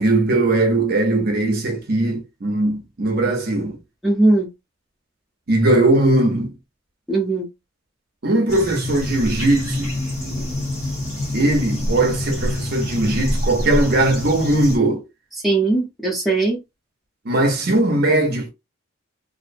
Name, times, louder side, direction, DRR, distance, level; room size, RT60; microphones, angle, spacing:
voice 1, 0.0-3.8 5.5-6.5 8.2-9.9 11.3-15.1 17.2-18.5, right 2 dB, 45° right, 0.5 m, -19 dB
voice 2, 4.0-4.5 7.1-7.5 15.4-16.6, right 2 dB, ahead, 0.7 m, -19 dB
sound 1, 8.5-14.8, left 1 dB, 30° left, 0.8 m, -26 dB
2.5 x 2.0 x 2.5 m
head